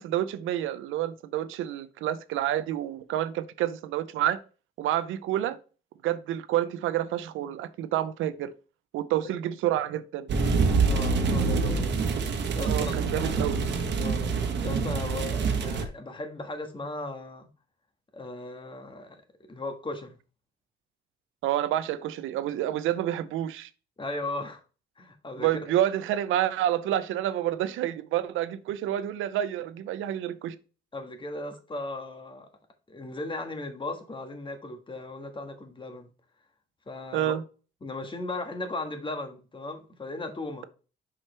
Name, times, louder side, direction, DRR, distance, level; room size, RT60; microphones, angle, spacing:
voice 1, 0.0-4.4 4.8-5.6 6.0-8.5 8.9-10.3 12.6-13.6 21.4-23.7 25.4-30.6 37.1-37.4, right 12 dB, 85° right, 0.6 m, -28 dB
sound 1, 10.3-15.8, right 4 dB, 60° right, 1.3 m, -26 dB
voice 2, 10.9-12.0 12.5-12.7 13.2-13.3 14.0-17.5 18.1-20.2 24.0-24.6 25.0-25.5 30.9-32.5 32.9-36.1 36.9-37.3 37.8-40.6, left 2 dB, 25° left, 1.5 m, -37 dB
5.8 x 5.0 x 3.3 m
cardioid pair, 90°, 20 cm